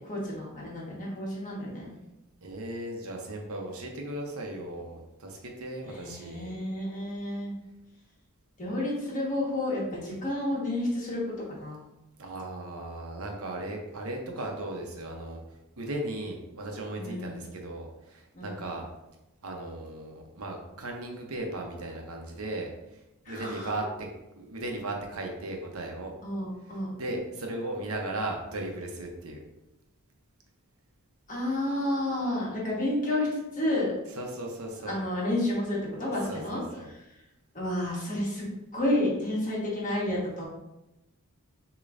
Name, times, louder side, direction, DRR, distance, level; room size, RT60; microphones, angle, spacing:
voice 1, 0.0-1.9 5.8-7.5 8.6-11.8 17.0-17.4 18.3-18.6 23.2-23.7 26.2-26.9 31.3-33.9 34.8-36.6 36.9-37.0 37.5-38.4 38.7-40.4, left 1 dB, 35° left, -4 dB, 1.5 m, -30 dB
voice 2, 2.4-6.5 12.2-15.4 15.8-18.9 19.4-24.1 24.4-26.1 26.9-29.4 34.2-34.9 36.2-36.9, right 1 dB, 70° right, 1 dB, 0.9 m, -36 dB
6.5 x 3.0 x 2.6 m, 0.94 s
head